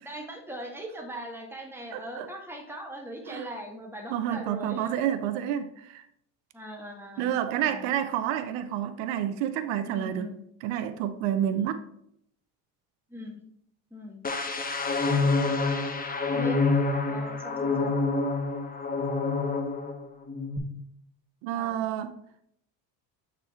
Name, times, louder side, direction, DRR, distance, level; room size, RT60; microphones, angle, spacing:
voice 1, 0.0-4.9 6.5-7.4 7.6-7.9 9.8-10.4 13.1-13.4 13.9-14.2 16.3-16.6 17.1-17.9 21.5-21.8, right 1 dB, 5° right, 1.7 m, -40 dB
voice 2, 1.9-2.3 3.3-3.4 4.1-6.0 7.2-10.3 10.6-11.8 21.4-22.2, right 10 dB, 85° right, 0.7 m, -29 dB
sound 1, 14.2-20.0 20.3-20.6, left 3 dB, 20° left, 0.9 m, -27 dB
7.9 x 4.1 x 4.2 m
supercardioid pair, 95°, 46 cm